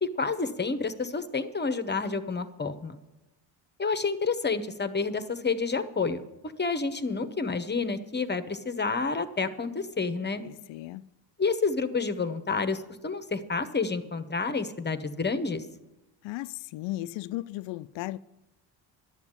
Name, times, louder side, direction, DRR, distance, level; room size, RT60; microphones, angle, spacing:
voice 1, 0.0-3.0 3.8-10.4 11.4-15.7, left 4 dB, 20° left, 1.0 m, -29 dB
voice 2, 10.4-11.0 16.2-18.2, left 17 dB, 75° left, 0.5 m, -36 dB
11.5 x 7.2 x 9.7 m
supercardioid pair, 80°, 46 cm